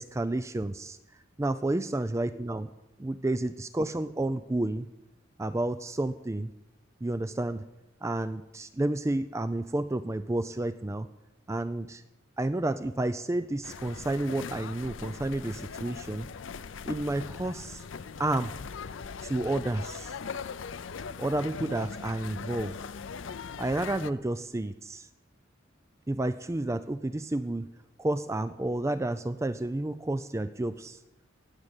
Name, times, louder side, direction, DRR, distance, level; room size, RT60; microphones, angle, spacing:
voice 1, 0.0-1.0 1.4-2.7 3.0-4.9 5.4-6.5 7.0-7.7 8.0-11.1 11.5-12.0 12.4-16.3 16.9-17.8 18.2-18.5 19.2-20.2 21.2-22.8 23.6-25.1 26.1-27.7 28.0-31.0, right 2 dB, 15° right, 12 dB, 0.4 m, -30 dB
sound 1, 13.6-24.1, left 5 dB, 80° left, 0.6 m, -40 dB
18.0 x 6.6 x 8.9 m, 0.94 s
head